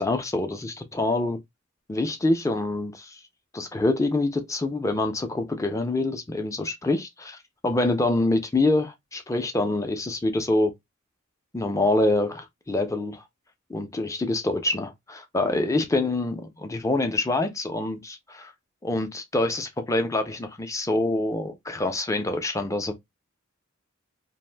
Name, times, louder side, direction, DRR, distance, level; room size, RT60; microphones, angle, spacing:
voice 1, 0.0-1.4 1.9-3.2 3.5-7.4 7.6-10.7 11.5-13.2 13.7-18.5 18.8-22.9, left 2 dB, 15° left, 0.4 m, -26 dB
2.5 x 2.1 x 3.2 m
head